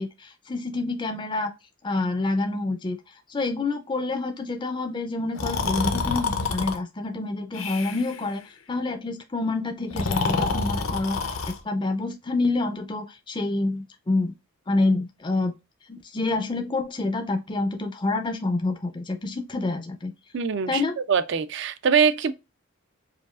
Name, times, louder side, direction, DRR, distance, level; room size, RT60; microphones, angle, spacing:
voice 1, 0.0-1.5 1.8-3.0 3.3-8.4 8.7-14.3 14.7-15.5 15.9-20.1 20.7-21.0, left 2 dB, 20° left, 0.4 m, -27 dB
Breathing, 5.3-6.8 7.5-8.2 9.8-11.6, left 4 dB, 70° left, 0.7 m, -27 dB
voice 2, 20.3-20.8 21.1-22.3, right 6 dB, 55° right, 0.4 m, -22 dB
4.9 x 2.3 x 2.4 m
head